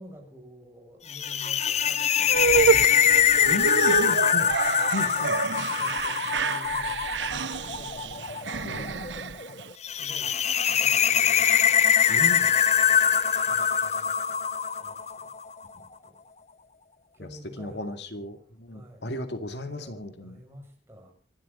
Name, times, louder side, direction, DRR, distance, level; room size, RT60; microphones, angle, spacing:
voice 1, 0.0-4.6 4.9-7.0 7.3-9.3 9.9-10.4 10.7-11.7 12.4-12.7 13.5-14.4 14.7-15.3 15.7-16.2 17.1-18.3 18.7-19.1 19.6-21.1, equal, 15° right, 1 dB, 6.8 m, -49 dB
sound 1, 1.1-15.4, left 8 dB, 40° left, 0.8 m, -23 dB
sound 2, 2.3-9.7, right 4 dB, 85° right, 0.8 m, -28 dB
voice 2, 3.4-4.5 4.9-5.4 8.6-9.1 12.1-12.5 17.2-17.3 17.6-20.4, left 1 dB, 70° left, 8 dB, 2.3 m, -35 dB
26.5 x 12.5 x 4.0 m, 0.39 s
head